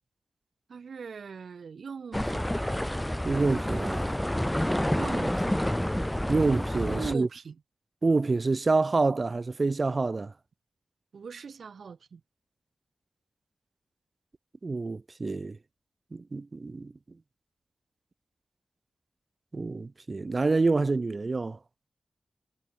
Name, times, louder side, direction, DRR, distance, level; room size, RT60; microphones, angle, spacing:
voice 1, 0.7-2.5 5.0-5.6 6.9-7.6 11.1-12.2, right 6 dB, 75° right, 4.3 m, -40 dB
sound 1, 2.1-7.1, left 1 dB, 5° left, 2.7 m, -29 dB
voice 2, 3.2-4.1 6.3-7.3 8.0-10.3 14.6-15.6 16.1-16.9 19.5-21.6, right 3 dB, 40° right, 2.8 m, -27 dB
wide cardioid pair, 90°, 0 cm